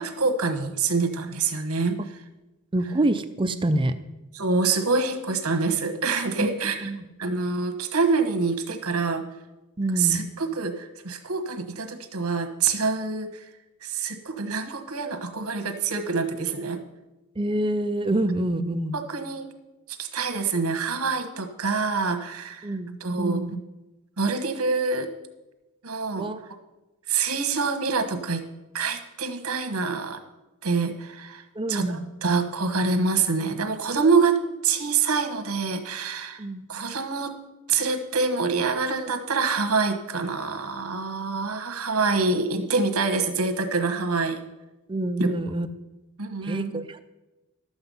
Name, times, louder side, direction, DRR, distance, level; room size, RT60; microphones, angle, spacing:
voice 1, 0.0-2.0 4.3-6.9 7.2-9.2 10.0-13.4 13.8-16.8 18.9-19.5 19.9-22.7 23.0-23.4 24.2-25.1 25.8-26.3 27.1-28.4 28.7-30.2 30.6-36.4 36.7-37.3 37.7-44.4 45.2-45.3 46.2-46.8, right 4 dB, 75° right, 9 dB, 1.3 m, -26 dB
voice 2, 2.7-4.0 6.4-7.0 9.8-10.3 17.4-18.9 22.6-23.5 26.2-26.4 31.5-32.0 36.4-36.7 44.9-45.7 46.4-47.1, right 1 dB, 20° right, 10 dB, 0.5 m, -27 dB
12.0 x 7.9 x 5.5 m, 1.0 s
head